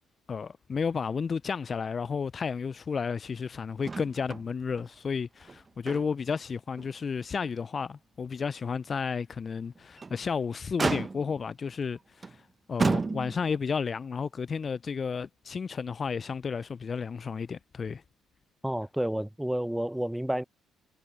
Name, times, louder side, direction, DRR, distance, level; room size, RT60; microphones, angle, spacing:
voice 1, 0.3-12.4 12.7-18.0, left 5 dB, 40° left, 0.5 m, -32 dB
Motor vehicle (road), 3.8-4.5 4.8-4.9 5.4-6.3 6.8-6.9 7.4-7.5 9.8-10.2 10.8-11.5 12.2-12.4 12.8-13.6 14.7-14.8, right 4 dB, 30° right, 1.0 m, -31 dB
voice 2, 18.6-20.4, right 1 dB, 5° right, 0.9 m, -30 dB
hypercardioid pair, 45°, 0 cm